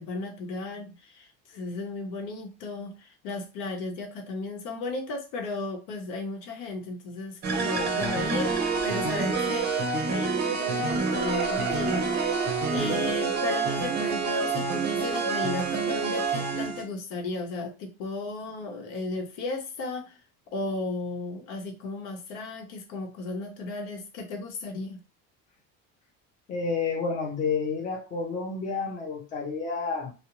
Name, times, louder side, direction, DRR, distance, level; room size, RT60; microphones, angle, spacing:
voice 1, 0.0-8.6 8.8-20.2 20.5-25.0, left 3 dB, 80° left, 0.8 m, -35 dB
sound 1, 7.4-16.9, right 4 dB, 30° right, 0.5 m, -27 dB
voice 2, 26.5-30.1, left 4 dB, 25° left, 0.6 m, -30 dB
2.4 x 2.0 x 2.9 m
cardioid pair, 165°, 31 cm